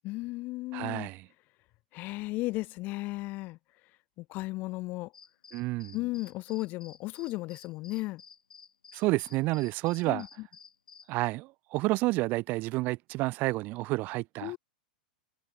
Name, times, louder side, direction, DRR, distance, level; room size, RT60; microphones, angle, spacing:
voice 1, 0.0-1.1 1.9-3.6 4.2-5.1 5.9-8.2 10.1-10.5 14.4-14.6, left 20 dB, 40° left, 0.4 m, -35 dB
voice 2, 0.7-1.3 5.5-6.0 8.9-10.3 11.1-14.5, right 21 dB, 40° right, 0.4 m, -30 dB
sound 1, 5.1-11.1, left 6 dB, 80° left, 1.0 m, -54 dB
hypercardioid pair, 100°, 5 cm